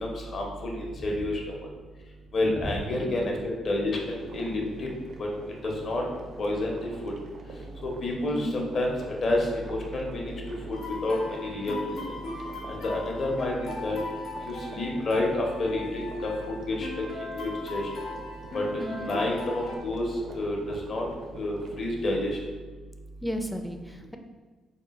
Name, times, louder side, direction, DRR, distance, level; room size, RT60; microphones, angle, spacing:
voice 1, 0.0-1.4 2.3-4.9 5.2-5.3 5.6-6.0 6.4-7.1 7.8-8.9 9.2-10.3 10.8-12.0 12.7-14.0 14.5-16.3 16.7-17.0 17.3-17.9 18.5-18.6 19.0-21.0 21.3-22.4, left 1 dB, 50° left, 0 dB, 0.8 m, -29 dB
sound 1, 3.8-22.5, right 2 dB, 65° right, 0.5 m, -47 dB
voice 2, 8.3-8.6 18.8-19.1 23.2-24.2, equal, ahead, 4 dB, 0.4 m, -34 dB
sound 2, 10.7-19.8, left 2 dB, 85° left, 0.9 m, -38 dB
3.7 x 2.2 x 4.1 m, 1.3 s
cardioid pair, 90°, 0 cm